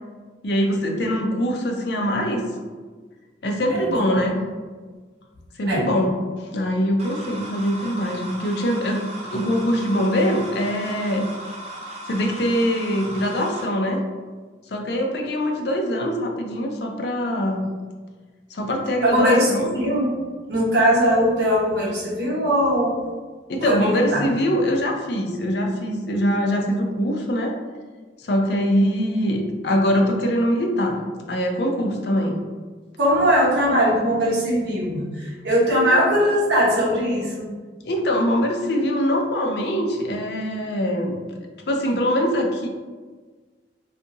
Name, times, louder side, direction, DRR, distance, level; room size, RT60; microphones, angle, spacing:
voice 1, 0.4-2.4 3.4-4.4 5.6-9.0 9.3-11.3 12.0-14.0 14.7-17.7 18.5-19.7 23.5-27.6 28.2-31.0 31.3-32.4 37.8-41.2 41.7-42.7, equal, 65° left, 2 dB, 0.5 m, -23 dB
voice 2, 3.7-4.2 5.7-5.9 19.0-20.1 20.5-23.0 23.6-24.3 33.0-37.5, equal, 70° right, -4 dB, 1.0 m, -20 dB
sound 1, 7.0-13.6, right 1 dB, 35° right, 0.5 m, -36 dB
2.7 x 2.4 x 3.8 m, 1.4 s
head